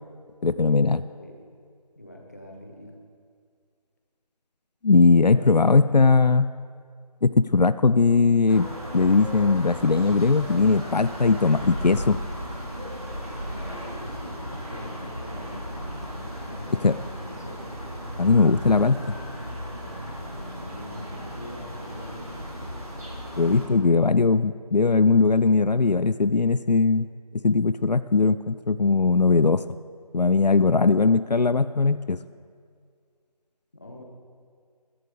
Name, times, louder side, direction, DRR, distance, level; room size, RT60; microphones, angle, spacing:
voice 1, 0.4-1.0 4.8-6.5 7.2-8.7 8.9-12.2 16.8-16.9 18.2-19.0 23.4-27.1 27.4-29.6 30.1-32.2, left 4 dB, 85° left, 14 dB, 0.5 m, -19 dB
voice 2, 1.0-1.3 2.0-2.9 5.2-6.0 13.0-17.6 20.3-22.4 33.7-34.0, left 1 dB, 25° left, 0 dB, 1.2 m, -43 dB
sound 1, 8.5-23.7, equal, 60° right, 3.7 m, -36 dB
20.5 x 11.0 x 3.5 m, 2.1 s
figure-of-eight pair, 170°, 21 cm